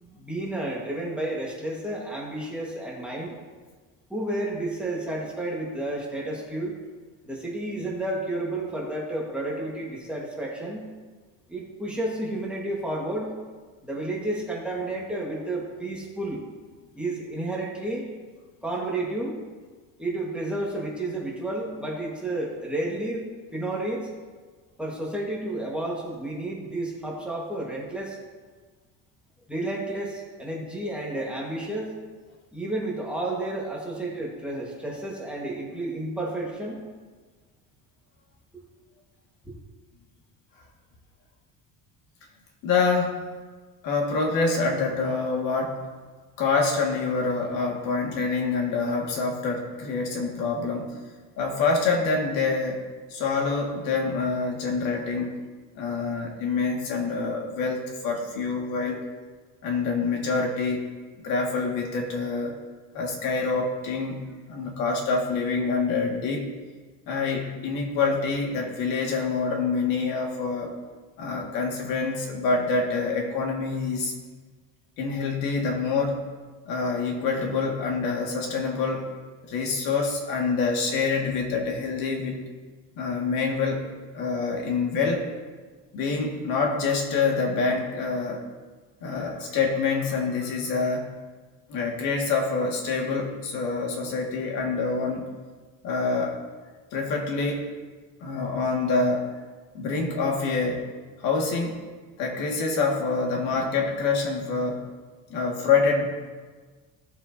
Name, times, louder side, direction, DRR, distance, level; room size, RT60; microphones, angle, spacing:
voice 1, 0.0-3.4 4.1-6.7 7.2-10.9 11.5-13.3 13.8-16.4 16.9-18.1 18.6-19.4 20.0-23.3 23.5-24.1 24.8-28.2 29.5-31.9 32.5-36.8, right 1 dB, 5° right, -5 dB, 1.4 m, -31 dB
voice 2, 42.6-43.3 43.8-45.9 46.4-50.9 51.4-52.8 53.1-55.3 55.8-59.0 59.6-60.8 61.2-62.6 62.9-66.5 67.1-70.7 71.2-74.1 75.0-76.3 76.7-79.1 79.5-82.4 83.0-85.3 85.9-88.4 89.0-91.1 91.7-95.3 95.8-96.4 96.9-97.7 98.2-99.3 99.7-100.9 101.2-101.8 102.2-104.8 105.3-106.1, left 4 dB, 70° left, 0 dB, 1.9 m, -26 dB
16.0 x 7.3 x 2.7 m, 1.4 s
cardioid pair, 180°, 34 cm